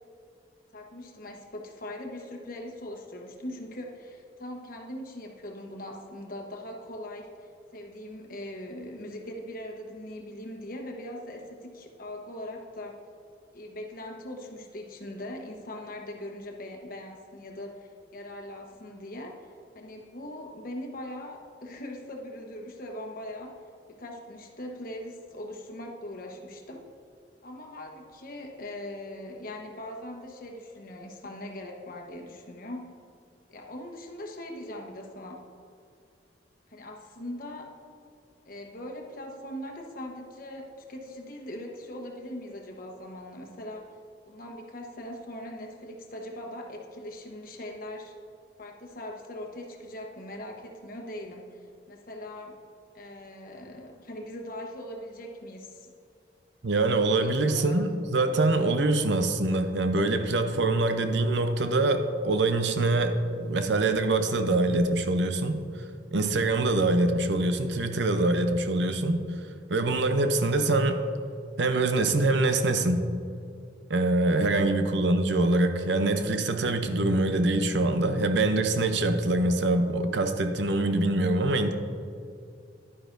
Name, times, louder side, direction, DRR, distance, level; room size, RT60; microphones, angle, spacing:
voice 1, 0.7-13.0 13.5-23.6 23.9-26.9 27.4-32.9 33.5-35.4 36.7-37.7 38.5-43.9 44.3-48.1 48.6-51.6 51.9-52.6 52.9-55.9 57.1-57.8, left 1 dB, 50° left, 1 dB, 1.1 m, -41 dB
voice 2, 56.6-65.6 66.1-69.2 69.7-71.0 71.6-73.1 73.9-81.7, right 2 dB, 70° right, 8 dB, 0.6 m, -24 dB
11.0 x 9.7 x 2.6 m, 2.4 s
head